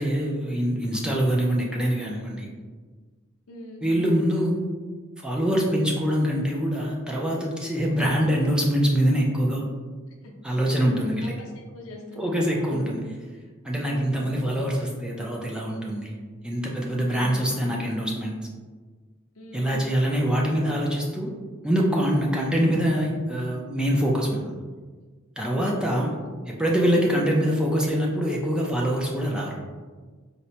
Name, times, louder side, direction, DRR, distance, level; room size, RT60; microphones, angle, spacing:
voice 1, 0.0-2.5 3.8-4.6 5.2-9.6 10.4-11.3 12.2-13.0 13.6-16.2 16.4-18.4 19.5-21.3 21.6-24.5 25.4-26.1 26.5-29.6, equal, 5° right, -2 dB, 0.4 m, -24 dB
voice 2, 3.5-3.8 7.9-8.2 10.1-12.9 13.9-14.4 17.0-17.5 19.3-19.8 25.6-25.9, left 1 dB, 75° left, 1 dB, 0.6 m, -43 dB
4.1 x 2.1 x 2.7 m, 1.4 s
head